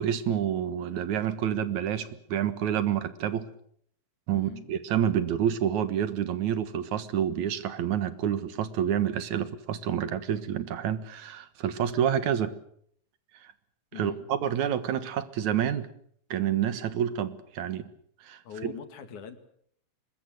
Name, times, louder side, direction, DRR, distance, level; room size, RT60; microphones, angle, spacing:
voice 1, 0.0-3.5 4.3-12.5 14.0-15.9 16.3-17.9 18.2-18.7, right 9 dB, 75° right, 13 dB, 2.8 m, -28 dB
voice 2, 4.3-4.7 13.9-14.3 18.4-19.4, left 8 dB, 85° left, 9 dB, 3.6 m, -42 dB
25.0 x 21.5 x 7.7 m, 0.65 s
omnidirectional pair, 3.4 m